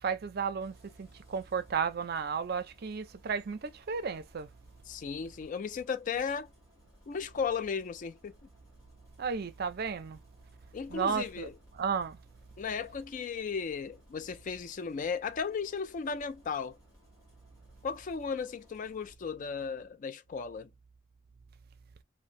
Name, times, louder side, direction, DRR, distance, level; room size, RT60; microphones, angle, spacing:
voice 1, 0.0-4.5 9.2-10.2 10.9-11.5 11.7-12.2, right 6 dB, 55° right, 0.5 m, -33 dB
Engine starting, 0.6-19.2, equal, 20° left, 1.4 m, -62 dB
voice 2, 4.9-6.5 7.1-8.3 10.7-11.5 12.6-16.8 17.8-20.7, left 5 dB, 45° left, 0.3 m, -35 dB
3.0 x 2.0 x 2.5 m
head